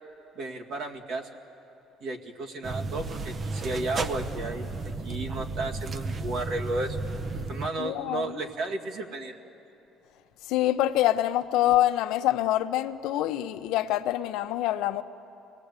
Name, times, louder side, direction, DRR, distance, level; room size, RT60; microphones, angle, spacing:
voice 1, 0.4-1.3 2.0-4.7 5.0-7.0 7.5-9.4, right 2 dB, 65° right, 2.1 m, -33 dB
sound 1, 2.6-7.7, right 3 dB, 30° right, 0.7 m, -33 dB
voice 2, 7.8-8.4 10.4-15.0, left 13 dB, 80° left, 0.8 m, -25 dB
26.5 x 19.0 x 8.2 m
cardioid pair, 135°, 0 cm